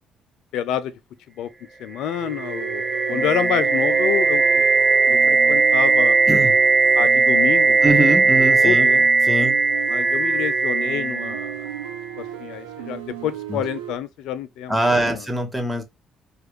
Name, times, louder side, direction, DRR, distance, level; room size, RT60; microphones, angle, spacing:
voice 1, 0.5-0.9 1.4-1.5 1.8-2.8 3.1-4.6 5.3-6.2 6.9-9.1 9.9-11.5 12.2-15.2, left 10 dB, 65° left, 0.4 m, -28 dB
sound 1, 2.1-12.0, right 4 dB, 25° right, 0.5 m, -18 dB
sound 2, 2.1-13.9, right 11 dB, 80° right, 1.0 m, -34 dB
voice 2, 7.8-8.9 9.2-9.6 13.5-13.6 14.7-15.8, right 1 dB, 10° right, 1.5 m, -22 dB
4.6 x 2.4 x 3.0 m
figure-of-eight pair, 45°, 0 cm